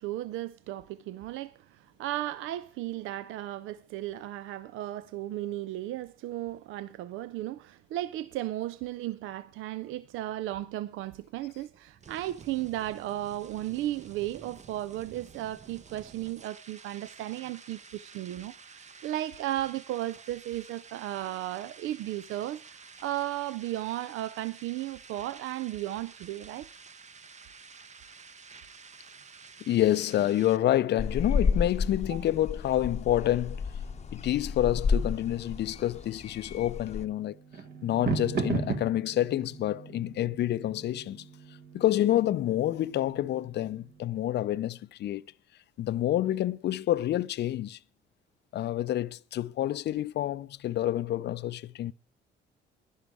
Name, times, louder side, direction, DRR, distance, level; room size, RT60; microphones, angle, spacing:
voice 1, 0.0-26.7 32.1-32.2, right 14 dB, 85° right, 0.4 m, -35 dB
sound 1, 10.9-30.6, right 5 dB, 35° right, 0.8 m, -51 dB
voice 2, 29.6-33.6 34.1-37.4 37.8-41.3 41.7-45.3 45.8-47.8 48.5-51.9, left 13 dB, 60° left, 0.5 m, -28 dB
sound 2, 31.0-37.0, left 5 dB, 35° left, 0.8 m, -31 dB
sound 3, 33.5-44.3, right 5 dB, 55° right, 1.5 m, -39 dB
11.0 x 11.0 x 4.7 m
cardioid pair, 90°, 20 cm